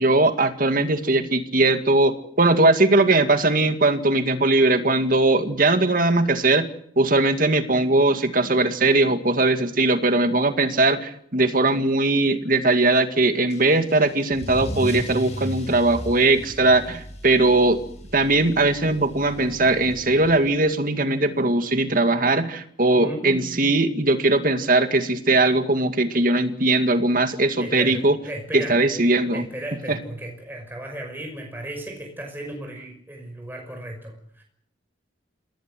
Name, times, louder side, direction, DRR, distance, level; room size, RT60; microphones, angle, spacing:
voice 1, 0.0-6.7 7.0-17.8 18.1-28.2 28.5-29.4 29.9-30.0, right 2 dB, 50° right, 8 dB, 2.2 m, -20 dB
Car / Engine starting / Accelerating revving vroom, 13.5-20.7, equal, 35° left, 7.6 m, -36 dB
voice 2, 23.0-23.7 24.0-24.1 27.6-28.8 29.3-34.4, right 1 dB, 10° right, 2 dB, 5.7 m, -35 dB
28.0 x 18.0 x 7.7 m, 0.65 s
head